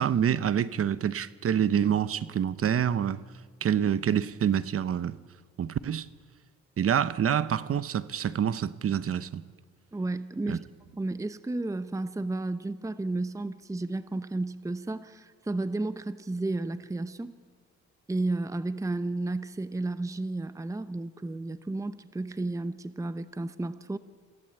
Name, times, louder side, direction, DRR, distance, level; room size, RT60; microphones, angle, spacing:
voice 1, 0.0-3.2 3.6-5.2 5.6-6.1 6.8-9.4 10.5-10.6, right 9 dB, 50° right, 0.9 m, -27 dB
voice 2, 9.9-10.7 11.0-17.3 18.1-24.0, right 2 dB, 10° right, 0.8 m, -32 dB
27.0 x 16.0 x 7.8 m
cardioid pair, 90°, 30 cm